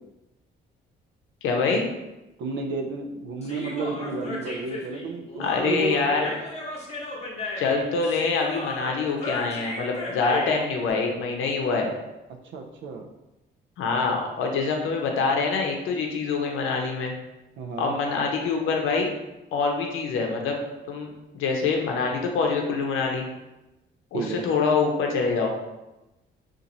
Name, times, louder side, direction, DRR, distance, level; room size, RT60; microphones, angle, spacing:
voice 1, 1.4-1.9 5.4-6.3 7.6-11.9 13.8-17.1 17.8-19.1 19.5-20.6 20.9-23.2 24.1-25.5, left 4 dB, 85° left, 2 dB, 0.7 m, -25 dB
voice 2, 2.4-6.2 12.4-13.1 17.6-18.0 24.1-24.4, right 3 dB, 75° right, 2 dB, 0.4 m, -31 dB
Human voice, 3.4-10.8, left 2 dB, 30° left, 0.9 m, -35 dB
2.9 x 2.5 x 3.8 m, 0.99 s
cardioid pair, 90°, 20 cm